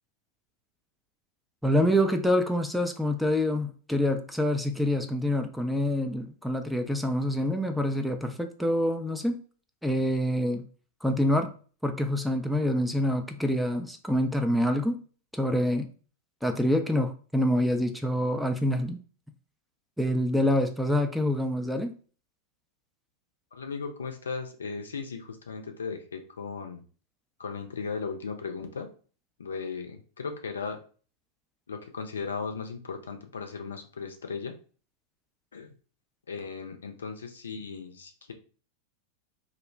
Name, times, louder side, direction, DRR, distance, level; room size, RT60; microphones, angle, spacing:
voice 1, 1.6-9.4 9.8-10.6 11.0-11.5 11.8-15.0 15.3-15.9 16.4-19.0 20.0-21.9, left 1 dB, ahead, 5 dB, 0.3 m, -26 dB
voice 2, 23.5-26.8 27.4-28.9 29.4-30.8 31.7-34.5 35.5-35.7 36.3-38.3, left 5 dB, 70° left, 5 dB, 0.4 m, -36 dB
2.4 x 2.0 x 3.3 m, 0.39 s
figure-of-eight pair, 90°, 0 cm